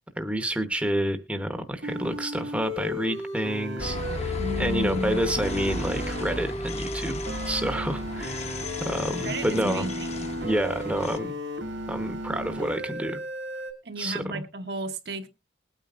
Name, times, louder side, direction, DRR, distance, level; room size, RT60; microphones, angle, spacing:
voice 1, 0.2-8.4 8.8-9.9 10.4-11.3 11.9-13.2 14.0-14.4, right 1 dB, 5° right, 0.9 m, -29 dB
sound 1, 1.8-13.7, left 1 dB, 75° right, 2.4 m, -34 dB
sound 2, 3.8-11.2, left 2 dB, 35° left, 0.9 m, -35 dB
voice 2, 4.4-5.5 9.2-10.3 13.8-15.3, right 1 dB, 55° right, 1.1 m, -33 dB
21.0 x 9.0 x 2.5 m
head